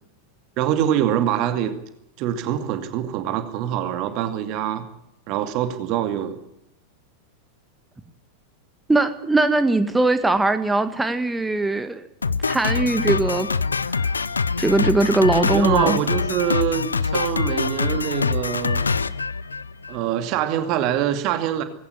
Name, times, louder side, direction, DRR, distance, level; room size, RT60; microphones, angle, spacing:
voice 1, 0.6-1.8 2.2-4.9 5.3-6.4 15.5-18.9 19.9-21.6, right 10 dB, 40° right, 9 dB, 2.5 m, -24 dB
voice 2, 8.9-12.1 12.4-13.5 14.0-14.1 14.6-16.0, right 2 dB, 10° right, 10 dB, 1.8 m, -20 dB
Drum kit, 12.2-20.0, left 4 dB, 75° left, 0.8 m, -24 dB
19.5 x 17.5 x 9.7 m, 0.80 s
figure-of-eight pair, 90°, 0 cm